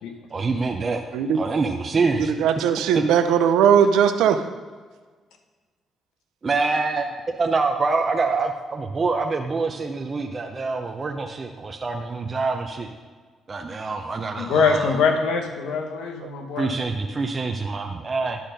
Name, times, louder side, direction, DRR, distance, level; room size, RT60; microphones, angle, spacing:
voice 1, 0.3-1.0 1.3-2.6 2.9-3.1 6.4-12.9 13.5-14.9 16.6-18.4, right 4 dB, 35° right, 3 dB, 0.6 m, -25 dB
voice 2, 2.2-4.4, right 8 dB, 90° right, 9 dB, 0.5 m, -19 dB
voice 3, 14.4-16.8, left 5 dB, 90° left, 4 dB, 0.9 m, -23 dB
10.5 x 4.3 x 5.1 m, 1.5 s
cardioid pair, 90°, 0 cm